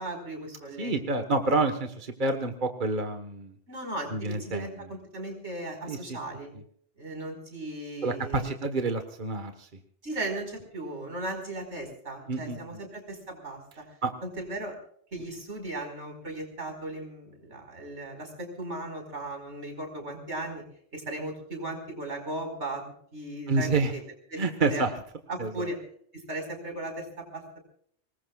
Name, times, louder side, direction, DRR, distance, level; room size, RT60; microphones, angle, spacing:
voice 1, 0.0-1.2 3.7-6.5 7.0-8.5 10.0-13.8 14.2-14.8 15.1-20.6 20.9-22.8 23.1-24.0 24.3-24.8 25.3-25.8 26.1-27.6, right 2 dB, 80° right, 3 dB, 5.4 m, -37 dB
voice 2, 0.8-3.6 4.1-4.7 5.9-6.2 8.0-9.7 12.3-12.6 14.0-14.1 23.5-23.9 24.4-24.9 25.4-25.7, right 3 dB, 45° right, 7 dB, 1.6 m, -28 dB
25.5 x 20.5 x 2.4 m, 0.63 s
omnidirectional pair, 1.1 m